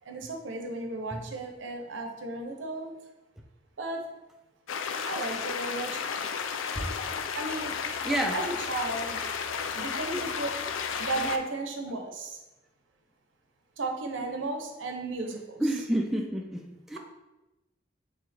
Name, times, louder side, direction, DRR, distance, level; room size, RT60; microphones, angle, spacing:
voice 1, 0.0-2.9 3.8-4.0 5.0-6.0 7.3-7.8 8.3-9.2 9.7-10.6 11.0-12.4 13.8-15.6, right 2 dB, 75° right, 4 dB, 0.7 m, -34 dB
sound 1, 4.7-11.4, left 6 dB, 80° left, 0.4 m, -33 dB
voice 2, 8.0-8.4 15.6-16.6 16.9-17.0, right 1 dB, ahead, 1 dB, 0.3 m, -29 dB
4.8 x 3.3 x 3.3 m, 1.0 s
head